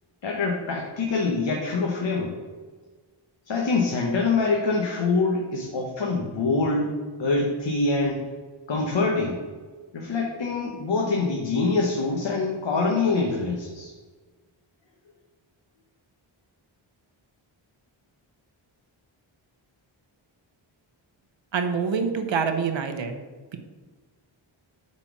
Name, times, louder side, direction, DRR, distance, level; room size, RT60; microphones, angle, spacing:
voice 1, 0.2-2.3 3.5-6.9 7.2-8.2 8.7-9.4 9.9-13.9, left 3 dB, 60° left, -1 dB, 1.2 m, -25 dB
voice 2, 21.5-23.2, right 5 dB, 65° right, 6 dB, 0.9 m, -26 dB
8.6 x 4.3 x 6.0 m, 1.4 s
wide cardioid pair, 130°, 49 cm